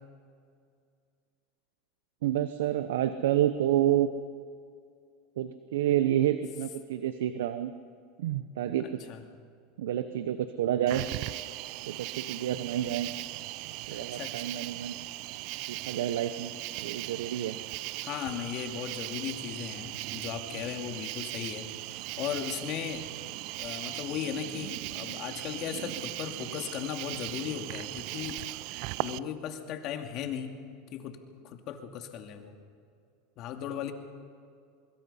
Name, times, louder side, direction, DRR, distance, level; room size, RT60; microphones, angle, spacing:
voice 1, 2.2-4.1 5.4-7.7 8.2-8.9 9.8-11.1 11.9-13.1 13.9-15.0 15.7-16.5 16.8-17.6, right 12 dB, 85° right, 11 dB, 0.9 m, -29 dB
Cricket, 10.9-29.2, right 20 dB, 60° right, 0.5 m, -38 dB
voice 2, 13.9-14.3 18.0-23.0 23.6-28.4 29.0-30.6 30.9-31.2 31.4-32.6 33.4-33.9, left 9 dB, 50° left, 5 dB, 2.5 m, -37 dB
24.5 x 22.0 x 5.7 m, 2.3 s
supercardioid pair, 115°, 0 cm